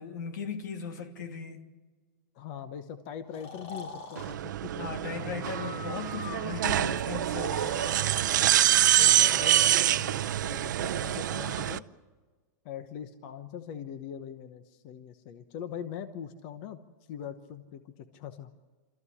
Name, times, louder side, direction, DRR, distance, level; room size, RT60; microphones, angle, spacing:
voice 1, 0.0-1.6 4.8-8.1, left 6 dB, 80° left, 2.6 m, -38 dB
voice 2, 2.3-6.0 8.8-11.8 12.6-16.8 17.1-18.5, left 8 dB, 35° left, 1.0 m, -42 dB
Breathing, 3.3-4.4 5.4-6.7 7.2-8.1 9.1-10.3 11.0-11.8, left 3 dB, 50° left, 2.9 m, -44 dB
sound 1, 4.2-11.8, right 12 dB, 90° right, 0.6 m, -26 dB
26.5 x 14.5 x 9.8 m
supercardioid pair, 180°, 10 cm